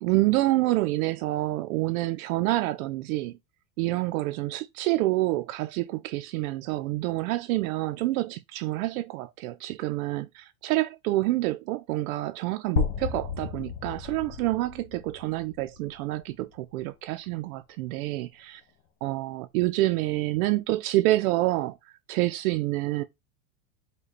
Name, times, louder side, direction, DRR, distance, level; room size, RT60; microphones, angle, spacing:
voice 1, 0.0-3.4 3.8-18.6 19.0-23.0, right 18 dB, 70° right, 0.5 m, -27 dB
sound 1, 12.8-16.7, left 8 dB, 75° left, 1.5 m, -33 dB
5.3 x 2.2 x 4.0 m
supercardioid pair, 155°, 44 cm